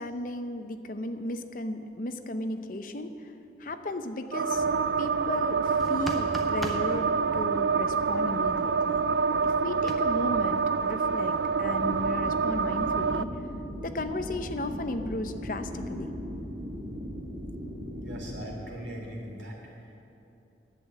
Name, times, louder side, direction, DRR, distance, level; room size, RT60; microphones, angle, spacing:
voice 1, 0.0-3.3 3.6-4.6 5.0-9.0 9.4-13.3 13.8-16.2, left 1 dB, 50° left, 8 dB, 0.7 m, -35 dB
sound 1, 4.3-13.2, right 5 dB, 70° right, 0.3 m, -27 dB
sound 2, 5.8-6.9 9.9-10.0, equal, ahead, 0.9 m, -36 dB
sound 3, 11.7-18.5, equal, 50° right, 2.5 m, -38 dB
voice 2, 18.0-19.6, right 1 dB, 90° right, -1 dB, 2.9 m, -39 dB
10.5 x 8.3 x 9.0 m, 2.8 s
head